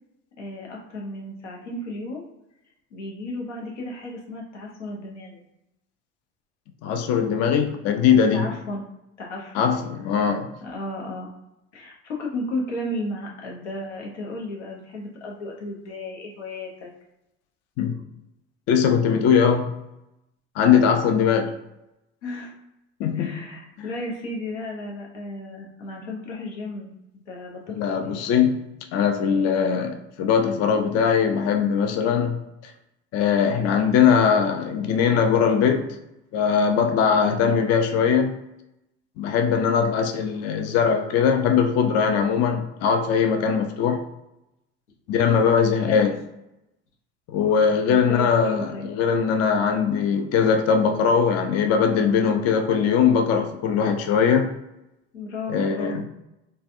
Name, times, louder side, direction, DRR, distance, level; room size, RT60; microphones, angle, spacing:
voice 1, 0.4-2.3 2.9-5.4 8.3-8.8 9.2-9.7 10.6-11.3 11.7-16.9 22.2-22.6 23.1-26.9 27.3-28.2 37.2-37.6 45.9-46.1 47.9-48.9 55.1-56.0, left 1 dB, 85° left, -1 dB, 0.8 m, -34 dB
voice 2, 6.8-8.5 9.5-10.5 17.8-17.9 18.7-19.8 20.6-21.5 23.0-23.4 27.7-32.7 33.1-36.0 36.3-38.4 39.2-44.0 45.1-46.2 47.3-54.6 55.5-56.0, left 7 dB, 45° left, 5 dB, 0.5 m, -21 dB
3.3 x 2.2 x 2.5 m, 0.89 s
hypercardioid pair, 65°, 35 cm